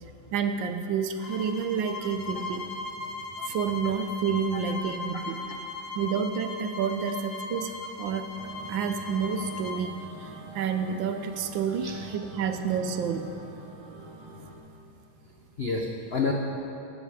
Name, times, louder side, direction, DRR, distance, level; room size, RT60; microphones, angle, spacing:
voice 1, 0.3-2.7 3.4-5.4 6.0-7.7 8.0-8.3 8.7-9.9 10.5-13.4, right 6 dB, 70° right, 8 dB, 1.3 m, -29 dB
sound 1, 1.2-9.8, left 3 dB, 40° left, 1.0 m, -38 dB
sound 2, 8.4-14.6, right 2 dB, 85° right, 2.2 m, -45 dB
voice 2, 11.7-12.0 15.6-16.3, left 4 dB, 85° left, 1 dB, 0.5 m, -30 dB
13.0 x 12.0 x 4.9 m, 2.8 s
omnidirectional pair, 2.3 m